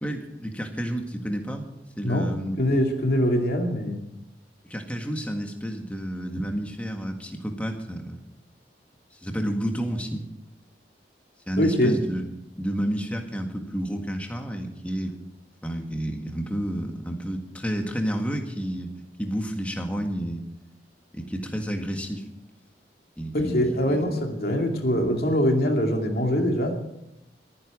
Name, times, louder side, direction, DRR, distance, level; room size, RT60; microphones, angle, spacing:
voice 1, 0.0-1.7 2.0-2.6 4.7-8.2 9.2-10.2 11.5-12.2 12.6-15.1 15.6-18.9 19.2-20.4 21.1-22.2 23.2-23.6 23.8-24.0, equal, 10° left, 3 dB, 1.7 m, -30 dB
voice 2, 2.6-4.0 11.6-12.0 23.3-26.7, equal, 60° left, 2 dB, 2.5 m, -23 dB
22.5 x 9.8 x 5.1 m, 0.85 s
head